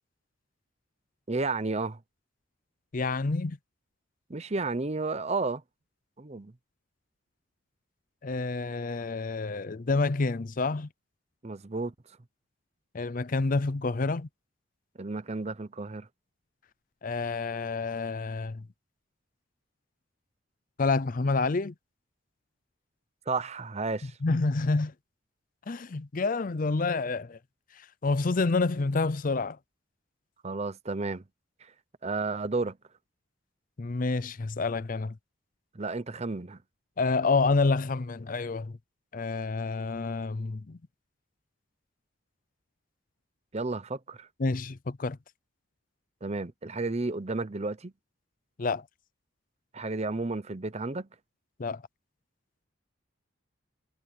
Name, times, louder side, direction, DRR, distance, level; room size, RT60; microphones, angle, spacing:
voice 1, 1.3-2.0 4.3-5.6 6.2-6.5 11.4-11.9 15.0-16.1 23.3-24.1 30.4-31.2 32.0-32.8 35.7-36.6 43.5-44.3 46.2-47.9 49.7-51.1, right 3 dB, 30° right, 0.7 m, -32 dB
voice 2, 2.9-3.6 8.2-10.9 12.9-14.3 17.0-18.6 20.8-21.7 24.2-24.9 25.7-27.4 28.0-29.6 33.8-35.1 37.0-38.7 39.1-40.8 44.4-45.2 48.6-48.8 51.6-51.8, left 3 dB, 40° left, 0.5 m, -28 dB
head